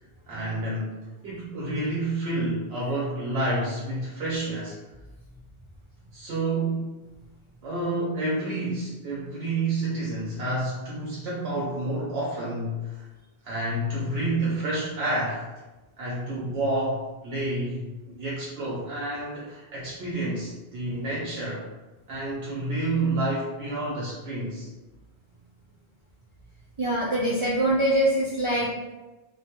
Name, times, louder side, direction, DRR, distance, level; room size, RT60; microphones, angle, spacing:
voice 1, 0.3-4.8 6.1-6.9 7.6-13.1 13.4-15.4 16.0-17.9 18.2-21.6 22.1-24.7, right 2 dB, 80° right, -6 dB, 0.9 m, -29 dB
voice 2, 26.8-28.7, right 1 dB, 45° right, -8 dB, 0.4 m, -23 dB
2.4 x 2.2 x 2.8 m, 1.1 s
omnidirectional pair, 1.1 m